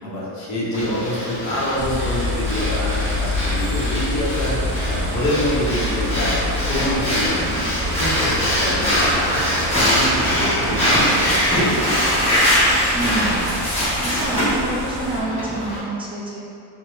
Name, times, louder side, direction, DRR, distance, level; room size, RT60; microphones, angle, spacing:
voice 1, 0.0-4.6 4.8-7.6 7.9-12.0, left 1 dB, 35° left, -7 dB, 1.0 m, -26 dB
Breathing, 0.7-15.8, equal, 15° left, 1.4 m, -22 dB
sound 1, 1.7-15.2, left 1 dB, 55° right, 0.7 m, -28 dB
voice 2, 12.9-13.5 14.0-16.4, right 1 dB, 10° right, -6 dB, 0.5 m, -28 dB
4.0 x 2.2 x 3.2 m, 2.6 s
cardioid pair, 135°, 49 cm